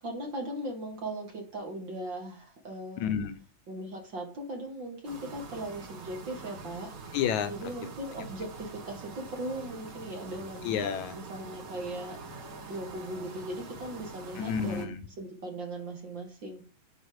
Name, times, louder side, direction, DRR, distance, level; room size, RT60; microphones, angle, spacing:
voice 1, 0.0-3.1 3.7-6.9 7.5-10.8 11.1-12.2 12.7-14.9 15.2-16.6, right 1 dB, 40° right, 2 dB, 2.5 m, -38 dB
voice 2, 3.0-3.4 7.1-7.9 10.6-11.2 14.4-15.0, left 8 dB, 80° left, 9 dB, 2.2 m, -31 dB
sound 1, 5.0-14.9, right 3 dB, 70° right, 4.6 m, -45 dB
10.0 x 4.9 x 7.8 m, 0.36 s
omnidirectional pair, 3.3 m